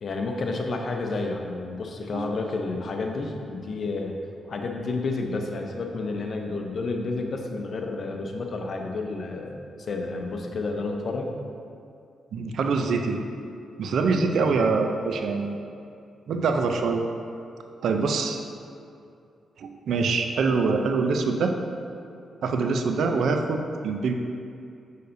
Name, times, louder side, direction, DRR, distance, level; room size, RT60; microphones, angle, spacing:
voice 1, 0.0-4.2 4.5-11.3, left 3 dB, 55° left, 2 dB, 0.7 m, -30 dB
voice 2, 12.3-13.2 13.8-15.6 16.3-17.0 17.8-18.4 19.6-21.5 22.4-24.1, right 4 dB, 75° right, 5 dB, 0.5 m, -24 dB
6.6 x 6.4 x 2.7 m, 2.5 s
cardioid pair, 60°, 0 cm